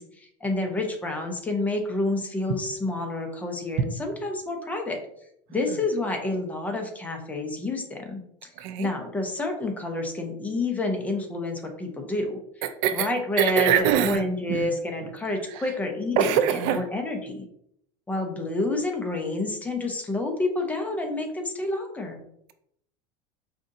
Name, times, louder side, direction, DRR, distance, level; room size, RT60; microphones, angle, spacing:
voice 1, 0.0-5.0 5.5-8.5 8.8-12.4 12.9-17.5 18.1-22.2, left 2 dB, 10° left, 3 dB, 0.6 m, -29 dB
voice 2, 8.6-8.9 12.6-13.1 13.4-14.2 14.5-14.8 15.0-15.1 15.5-15.6 16.2-16.8, right 9 dB, 60° right, 10 dB, 0.4 m, -24 dB
5.0 x 2.7 x 2.5 m, 0.73 s
cardioid pair, 155°, 15 cm